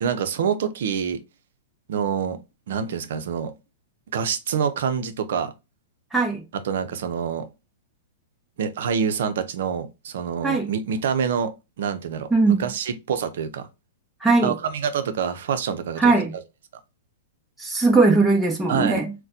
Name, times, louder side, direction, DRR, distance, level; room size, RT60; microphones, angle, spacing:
voice 1, 0.0-1.2 1.9-2.4 2.7-3.5 4.1-5.5 6.6-7.4 8.6-13.7 14.4-16.4 18.7-19.0, right 7 dB, 70° right, 0.6 m, -26 dB
voice 2, 6.1-6.4 10.4-10.7 12.3-12.7 14.2-14.5 16.0-16.3 17.6-19.1, right 3 dB, 10° right, 0.8 m, -19 dB
4.0 x 2.2 x 2.7 m
hypercardioid pair, 130°, 0 cm